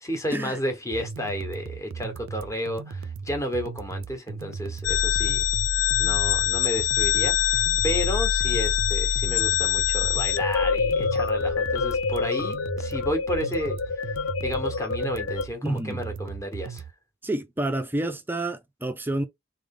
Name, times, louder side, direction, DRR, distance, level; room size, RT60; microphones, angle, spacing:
voice 1, 0.0-5.5 6.0-13.8 14.4-16.8, equal, 15° left, 1.3 m, -32 dB
sound 1, 0.9-16.9, right 5 dB, 90° right, 0.4 m, -37 dB
sound 2, 4.8-15.5, left 8 dB, 70° left, 0.4 m, -25 dB
voice 2, 15.6-16.0 17.2-19.2, right 1 dB, 10° right, 0.5 m, -29 dB
3.9 x 3.4 x 3.7 m
head